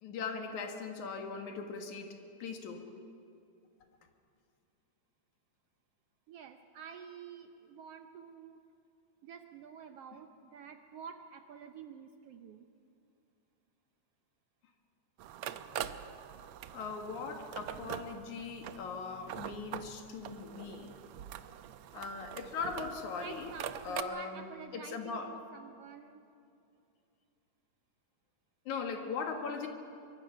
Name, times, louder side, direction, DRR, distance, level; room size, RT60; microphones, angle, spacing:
voice 1, 0.0-2.9 16.7-20.9 21.9-23.5 23.8-25.3 28.7-29.7, left 5 dB, 75° left, 4 dB, 3.1 m, -40 dB
voice 2, 6.3-8.6 9.2-12.7 23.2-26.2, right 7 dB, 70° right, 7 dB, 1.5 m, -49 dB
sound 1, 15.2-24.0, right 10 dB, 90° right, 1.2 m, -44 dB
24.0 x 23.5 x 5.8 m, 2.6 s
omnidirectional pair, 3.4 m